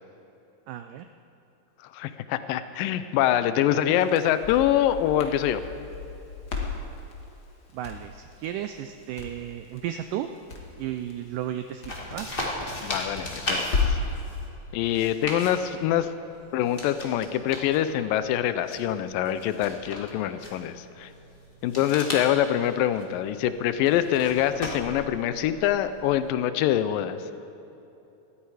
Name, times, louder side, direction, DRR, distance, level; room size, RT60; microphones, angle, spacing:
voice 1, 0.7-1.1 3.7-3.9 7.7-10.3 10.8-12.3 21.8-21.9, right 11 dB, 90° right, 8 dB, 1.8 m, -34 dB
voice 2, 1.9-5.6 12.8-14.0 14.7-16.1 16.5-21.1 21.6-27.2, left 11 dB, 80° left, 12 dB, 2.1 m, -25 dB
Crackle, 3.9-14.1, left 4 dB, 50° left, 1.2 m, -35 dB
sound 1, 11.9-26.3, left 1 dB, 25° left, 1.2 m, -38 dB
19.5 x 13.5 x 4.9 m, 3.0 s
omnidirectional pair, 4.4 m